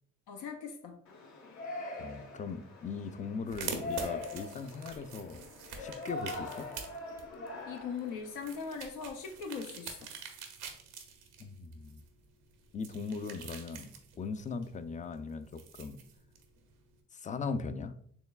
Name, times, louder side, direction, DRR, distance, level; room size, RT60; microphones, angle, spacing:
voice 1, 0.3-1.0 7.7-10.1, left 5 dB, 80° left, 4 dB, 0.6 m, -40 dB
Yell, 1.1-8.8, left 2 dB, 65° left, 1.0 m, -43 dB
voice 2, 2.0-5.4 5.8-6.7 11.4-12.0 12.7-13.9 14.2-16.0 17.1-17.9, left 5 dB, 25° left, 11 dB, 0.3 m, -39 dB
sound 1, 3.5-17.0, right 6 dB, 90° right, 0.7 m, -46 dB
4.5 x 3.1 x 2.3 m, 0.62 s
supercardioid pair, 75°, 31 cm